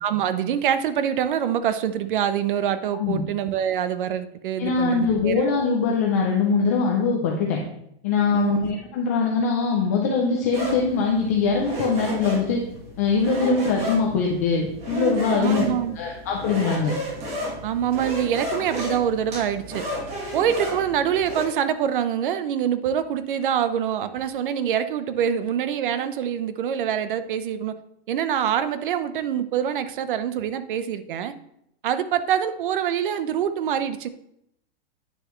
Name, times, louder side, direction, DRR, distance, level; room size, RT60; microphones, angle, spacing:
voice 1, 0.0-5.5 8.3-8.6 13.4-13.6 15.3-16.0 17.6-19.8 20.3-27.7 28.1-31.3 31.8-34.1, right 9 dB, 50° right, 12 dB, 0.7 m, -25 dB
voice 2, 4.6-7.6 8.0-12.6 13.0-15.7 16.0-17.0, left 5 dB, 15° left, -1 dB, 0.4 m, -22 dB
sound 1, 10.5-21.5, equal, 20° right, 1.3 m, -32 dB
9.6 x 6.7 x 3.0 m, 0.76 s
supercardioid pair, 170°, 32 cm